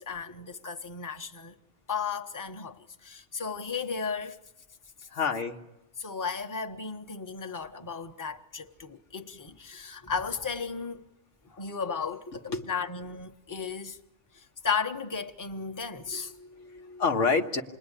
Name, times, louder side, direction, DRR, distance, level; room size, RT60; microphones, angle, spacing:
voice 1, 0.0-1.5 1.9-4.4 5.0-5.1 6.0-11.1 11.5-14.0 14.3-16.3, left 5 dB, 15° left, 1.1 m, -35 dB
voice 2, 5.1-5.6 12.5-12.7 16.1-17.6, left 4 dB, 90° left, 1.8 m, -28 dB
28.0 x 20.5 x 10.0 m
omnidirectional pair, 1.2 m